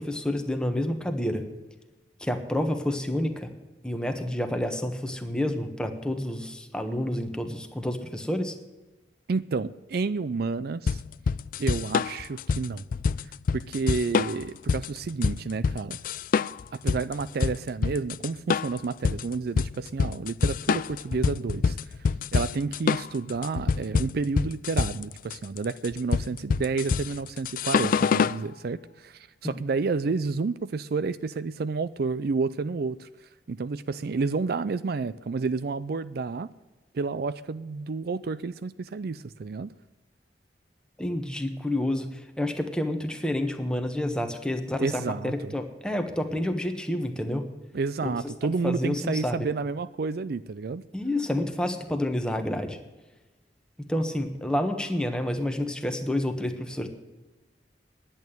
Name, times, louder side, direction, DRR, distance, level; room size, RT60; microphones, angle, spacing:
voice 1, 0.0-1.4 2.2-3.5 3.8-8.5 41.0-47.5 48.0-48.2 48.4-49.5 50.9-52.8 53.9-56.9, left 1 dB, 5° left, 6 dB, 1.3 m, -29 dB
voice 2, 9.3-11.0 11.6-12.8 13.5-16.0 16.7-21.8 22.3-33.1 33.5-36.5 36.9-39.7 44.8-45.5 47.7-50.8, right 4 dB, 60° right, 15 dB, 0.4 m, -30 dB
sound 1, 10.9-28.4, left 5 dB, 50° left, 0.3 m, -26 dB
10.5 x 8.9 x 9.2 m, 1.1 s
head